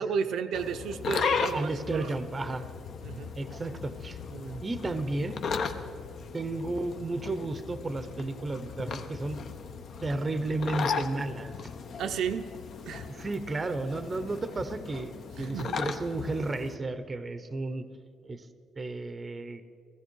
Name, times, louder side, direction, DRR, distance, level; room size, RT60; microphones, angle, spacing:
voice 1, 0.0-2.1 3.0-3.3 4.3-4.6 12.0-12.5 12.9-13.2 15.4-15.8, right 6 dB, 65° right, 6 dB, 0.6 m, -33 dB
sound 1, 0.5-16.7, left 5 dB, 50° left, 0.8 m, -36 dB
voice 2, 1.5-2.7 3.3-4.2 4.6-5.4 6.3-9.4 10.0-11.5 13.1-15.1 15.4-17.8 18.2-18.5 18.8-19.6, right 2 dB, 20° right, 11 dB, 0.7 m, -33 dB
16.0 x 15.5 x 4.6 m, 2.3 s
cardioid pair, 135°, 0 cm